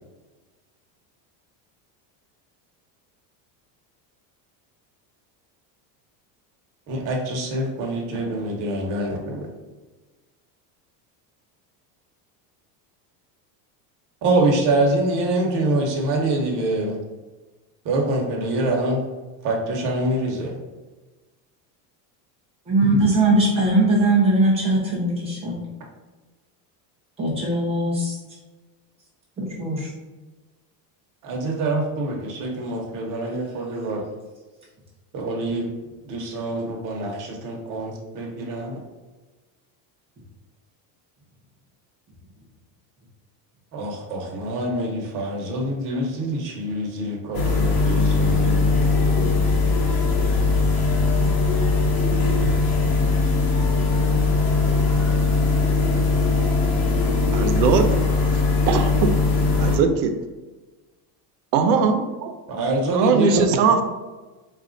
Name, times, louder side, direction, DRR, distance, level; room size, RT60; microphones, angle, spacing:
voice 1, 6.9-9.4 14.2-17.0 17.8-19.0 19.4-20.5 31.2-34.0 35.1-35.7 36.0-38.8 43.7-48.9 62.5-63.4, right 1 dB, 40° right, 0 dB, 0.9 m, -25 dB
voice 2, 22.7-25.6 27.2-28.1 29.4-29.9, right 2 dB, 15° right, -5 dB, 0.3 m, -20 dB
sound 1, 47.3-59.8, left 3 dB, 45° left, 0.9 m, -20 dB
voice 3, 57.3-58.0 58.7-59.1 59.6-60.1 61.5-62.3 62.9-63.8, right 5 dB, 85° right, 6 dB, 0.7 m, -20 dB
4.2 x 2.4 x 3.8 m, 1.2 s
cardioid pair, 175°, 48 cm